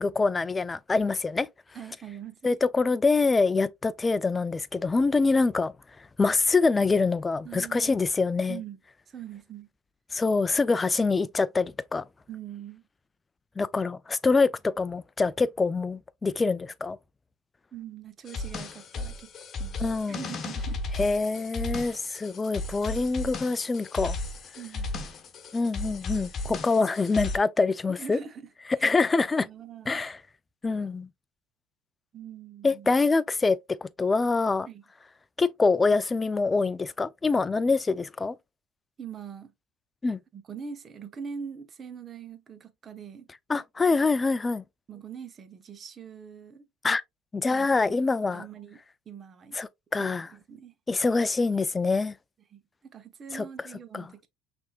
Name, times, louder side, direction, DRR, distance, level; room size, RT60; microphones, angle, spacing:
voice 1, 0.0-1.5 2.4-5.7 6.2-8.6 10.1-12.0 13.6-17.0 19.8-20.2 21.0-24.2 25.5-28.2 28.8-29.5 29.9-30.2 30.6-31.1 32.6-34.7 35.4-38.3 40.0-40.2 43.5-44.6 46.8-47.0 47.3-48.4 49.5-50.3 50.9-52.1 53.3-53.4 53.9-54.1, left 4 dB, 20° left, 0.4 m, -25 dB
voice 2, 1.7-2.6 7.4-8.0 8.5-8.8 9.1-9.7 12.3-12.8 17.7-19.3 19.6-20.8 24.6-24.9 28.0-28.5 28.8-29.0 29.4-30.0 32.1-32.9 34.7-34.8 39.0-39.5 40.3-43.3 44.9-46.7 47.5-48.0 48.3-48.8 49.1-49.6 50.0-50.7 52.5-54.3, right 7 dB, 35° right, 0.9 m, -43 dB
sound 1, 18.3-27.4, left 2 dB, 40° left, 1.1 m, -35 dB
5.9 x 3.5 x 2.3 m
supercardioid pair, 100°, 0 cm